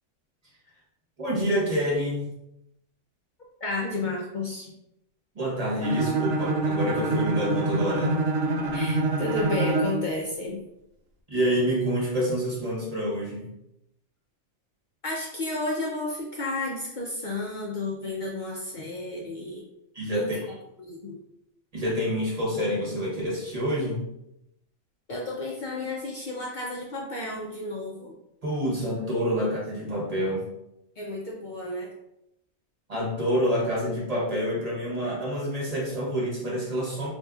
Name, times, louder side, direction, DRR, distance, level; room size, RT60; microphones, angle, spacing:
voice 1, 1.2-2.3 5.3-8.3 11.3-13.5 19.9-20.3 21.7-24.1 28.4-30.4 32.9-37.1, equal, 30° right, -5 dB, 0.9 m, -27 dB
voice 2, 3.6-4.7 8.7-10.6 15.0-19.6 20.1-20.3 20.8-21.2 25.1-28.1 31.0-31.9, left 2 dB, 60° left, -2 dB, 0.5 m, -32 dB
Bowed string instrument, 5.8-10.1, right 2 dB, 75° right, 1.0 m, -26 dB
4.1 x 2.7 x 2.3 m, 0.84 s
omnidirectional pair, 1.4 m